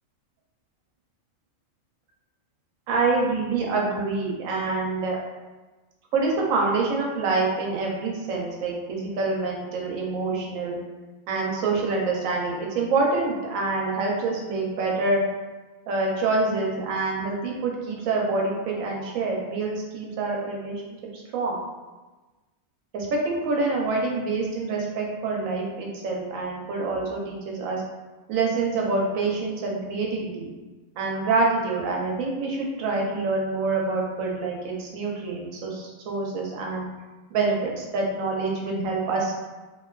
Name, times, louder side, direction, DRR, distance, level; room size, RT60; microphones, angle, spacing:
voice 1, 2.9-5.2 6.1-10.8 11.3-15.2 15.9-20.8 21.1-21.6 22.9-27.8 28.3-30.5 31.0-36.8 37.3-39.3, right 3 dB, 75° right, -1 dB, 0.9 m, -26 dB
2.5 x 2.2 x 2.2 m, 1.2 s
omnidirectional pair, 1.5 m